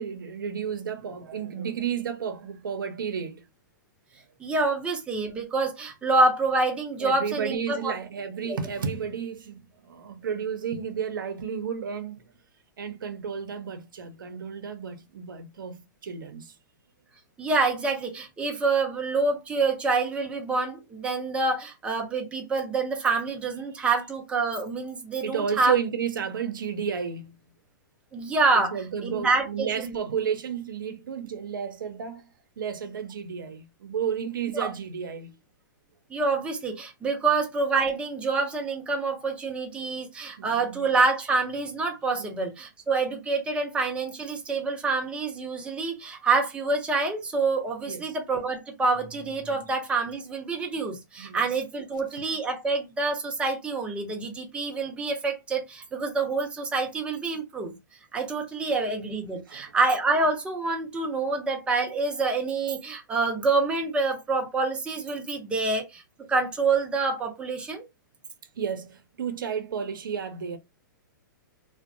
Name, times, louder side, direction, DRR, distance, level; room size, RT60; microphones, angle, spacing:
voice 1, 0.0-3.5 7.0-12.2 12.8-16.5 25.2-27.4 28.5-32.3 32.6-35.3 40.4-40.9 42.2-42.4 47.9-48.2 51.2-51.5 59.5-59.7 68.5-70.6, right 7 dB, 85° right, 0.6 m, -32 dB
voice 2, 4.4-7.9 8.5-8.6 17.4-25.8 28.1-28.8 29.0-30.0 34.5-34.7 36.1-57.7 58.1-66.0 66.3-67.8, right 3 dB, 10° right, 0.6 m, -27 dB
2.5 x 2.1 x 2.6 m
hypercardioid pair, 135°, 11 cm